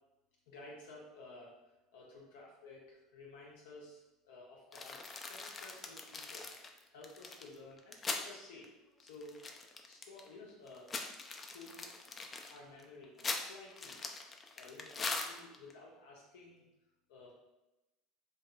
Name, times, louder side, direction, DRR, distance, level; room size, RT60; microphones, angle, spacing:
voice 1, 0.5-1.5 1.9-6.5 6.9-8.7 9.0-9.4 9.9-10.9 11.4-11.9 12.5-14.0 14.6-16.6 17.1-17.3, left 2 dB, 85° left, -4 dB, 0.5 m, -53 dB
sound 1, 4.7-8.3 8.6-8.7 9.0-10.3 10.7-15.7, left 3 dB, 25° left, 0.3 m, -42 dB
2.7 x 2.3 x 2.3 m, 1.0 s
supercardioid pair, 100°, 0 cm